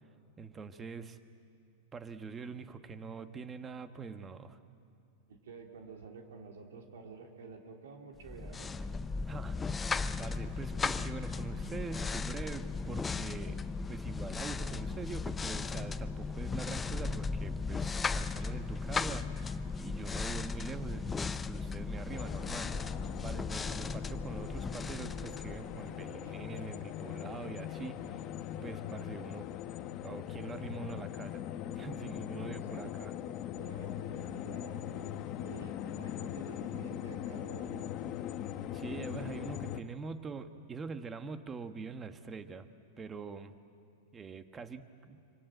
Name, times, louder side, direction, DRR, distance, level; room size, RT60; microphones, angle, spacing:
voice 1, 0.4-1.2 1.9-4.6 9.3-9.6 10.2-13.6 13.9-19.5 19.8-22.9 23.2-28.2 28.6-29.5 30.0-31.5 31.7-33.1 38.7-42.7 43.0-43.5 44.1-45.2, right 5 dB, 15° right, 10 dB, 1.2 m, -44 dB
voice 2, 5.3-8.9 26.2-26.3 32.3-32.9 33.3-38.1, right 4 dB, 85° right, 2 dB, 3.3 m, -50 dB
sound 1, 8.2-26.1, left 4 dB, 15° left, 0.5 m, -36 dB
sound 2, 22.1-39.8, left 11 dB, 40° left, 1.1 m, -41 dB
25.5 x 25.0 x 9.1 m, 2.5 s
supercardioid pair, 145°, 0 cm